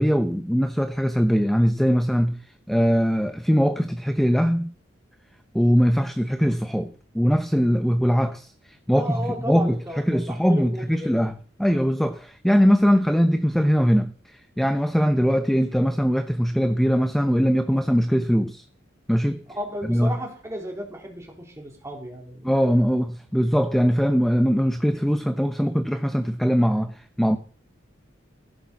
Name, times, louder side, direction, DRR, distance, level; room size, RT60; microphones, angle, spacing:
voice 1, 0.0-2.4 2.7-4.7 5.5-8.5 8.9-11.3 11.6-18.6 19.1-19.4 19.9-20.2 22.4-27.4, equal, ahead, 0.8 m, -21 dB
voice 2, 8.9-11.3 19.5-22.5, equal, 15° right, 3.9 m, -34 dB
16.0 x 6.9 x 7.0 m
head